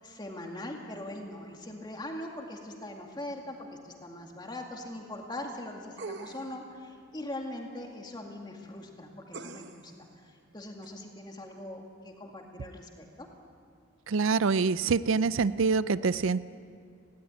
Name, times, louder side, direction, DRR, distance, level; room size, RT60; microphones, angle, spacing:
voice 1, 0.0-9.9 10.2-13.3, left 1 dB, 20° left, 1 dB, 2.2 m, -41 dB
sound 1, 6.0-6.6 9.3-9.9 10.8-10.9, right 4 dB, 55° right, 1.0 m, -42 dB
voice 2, 14.1-16.4, right 4 dB, 70° right, 17 dB, 0.5 m, -25 dB
19.5 x 17.0 x 9.6 m, 2.3 s
head